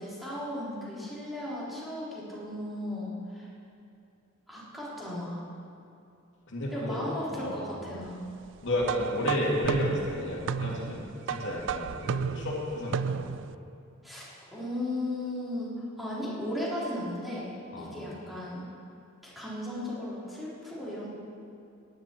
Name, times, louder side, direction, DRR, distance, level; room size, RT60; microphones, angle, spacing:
voice 1, 0.0-3.5 4.5-5.4 6.7-8.2 14.0-17.5 17.8-18.6 19.2-21.1, left 1 dB, ahead, -9 dB, 3.7 m, -36 dB
voice 2, 6.5-7.6 8.6-13.3 17.7-18.0, left 1 dB, 60° left, -3 dB, 2.6 m, -32 dB
sound 1, 8.8-13.5, right 7 dB, 60° right, 0.3 m, -33 dB
17.0 x 11.0 x 4.6 m, 2.6 s
head